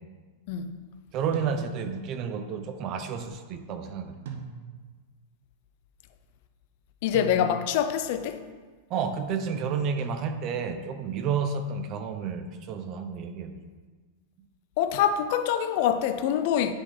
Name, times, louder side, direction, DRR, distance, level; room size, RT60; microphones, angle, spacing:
voice 1, 1.1-4.2 8.9-13.6, right 6 dB, 35° right, 0.6 m, -31 dB
sound 1, 1.3-2.1 4.3-5.0 7.1-7.9 10.0-10.8, right 6 dB, 75° right, 0.9 m, -41 dB
voice 2, 7.0-8.4 14.8-16.7, left 9 dB, 55° left, 0.4 m, -25 dB
9.9 x 3.6 x 4.2 m
supercardioid pair, 145°, 0 cm